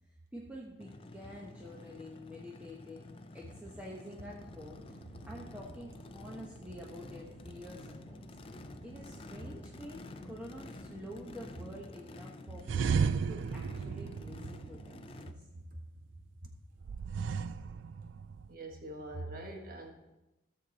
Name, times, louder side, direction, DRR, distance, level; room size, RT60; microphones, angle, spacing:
voice 1, 0.1-5.0 5.3-8.3 8.8-15.4 16.1-16.2, equal, 10° right, -3 dB, 0.9 m, -48 dB
Race car auto racing / Idling / Accelerating revving vroom, 0.8-15.3, left 2 dB, 25° left, 0.5 m, -51 dB
sound 1, 4.2-11.8, equal, 25° right, 3.8 m, -53 dB
sound 2, 12.6-15.3 16.8-18.5, right 6 dB, 70° right, 0.3 m, -34 dB
voice 2, 18.5-19.9, right 2 dB, 45° right, 2 dB, 1.5 m, -43 dB
16.0 x 6.6 x 4.1 m, 1.0 s
head